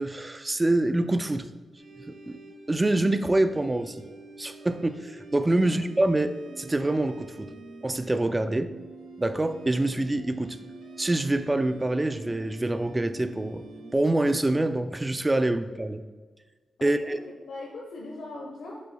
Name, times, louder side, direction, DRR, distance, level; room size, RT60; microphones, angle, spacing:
voice 1, 0.0-1.5 2.0-2.4 2.7-4.0 4.4-7.5 7.8-8.7 9.2-10.6 11.0-13.6 13.9-16.0 16.8-17.2, right 2 dB, 15° right, 11 dB, 0.4 m, -26 dB
sound 1, 1.8-13.9, right 3 dB, 90° right, 2.0 m, -46 dB
voice 2, 16.8-17.2 17.5-18.9, left 2 dB, 70° left, -3 dB, 1.1 m, -40 dB
7.5 x 7.0 x 2.3 m, 1.4 s
wide cardioid pair, 120°, 0 cm